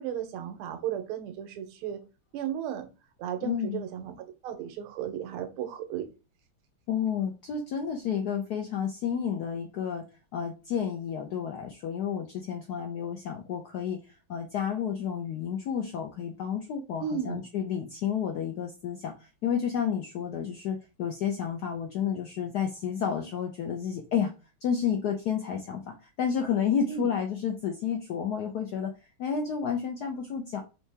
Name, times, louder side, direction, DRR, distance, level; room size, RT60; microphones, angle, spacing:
voice 1, 0.0-2.0 2.3-2.9 3.2-6.1 17.0-17.4 26.9-27.1, right 9 dB, 85° right, 7 dB, 1.6 m, -34 dB
voice 2, 3.4-3.8 6.9-10.0 10.3-24.3 24.6-28.9 29.2-30.6, left 7 dB, 80° left, 3 dB, 0.9 m, -31 dB
4.6 x 2.8 x 3.3 m, 0.30 s
omnidirectional pair, 2.4 m